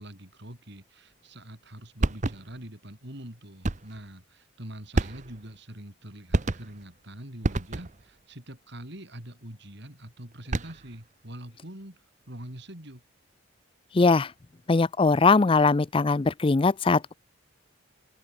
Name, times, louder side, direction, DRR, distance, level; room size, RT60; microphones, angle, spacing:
voice 1, 0.0-13.0, right 1 dB, 55° right, 4.8 m, -44 dB
sound 1, 2.0-2.7 3.6-4.0 4.9-5.6 6.3-6.9 7.4-8.1 10.3-11.0, right 2 dB, 35° right, 0.8 m, -29 dB
voice 2, 13.9-14.3 14.7-17.1, left 3 dB, 25° left, 0.4 m, -21 dB
open air
head